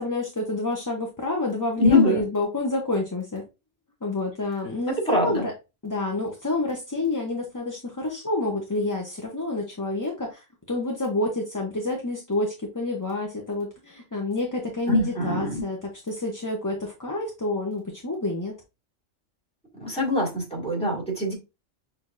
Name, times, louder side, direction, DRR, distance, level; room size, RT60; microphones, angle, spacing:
voice 1, 0.0-3.4 4.0-5.5 5.8-18.6, left 2 dB, 25° left, 0.5 m, -28 dB
voice 2, 1.8-2.2 5.1-5.5 14.9-15.7 19.7-21.3, left 2 dB, 5° left, 1.9 m, -23 dB
6.2 x 2.7 x 2.4 m
omnidirectional pair, 1.3 m